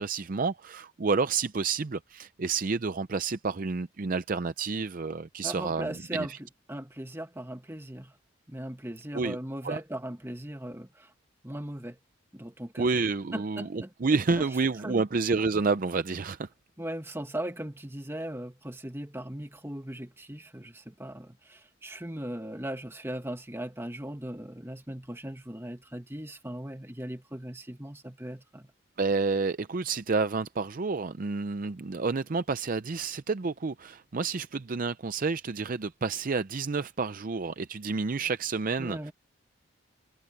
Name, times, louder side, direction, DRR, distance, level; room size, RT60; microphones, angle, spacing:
voice 1, 0.0-6.4 9.1-9.4 9.6-9.8 12.8-16.5 29.0-39.1, right 4 dB, 40° right, 0.5 m, -29 dB
voice 2, 5.4-6.3 6.7-8.1 8.5-11.1 11.4-12.0 12.3-12.9 13.3-13.9 14.4-14.5 14.8-15.0 16.8-28.7 38.8-39.1, right 1 dB, 10° right, 1.5 m, -38 dB
head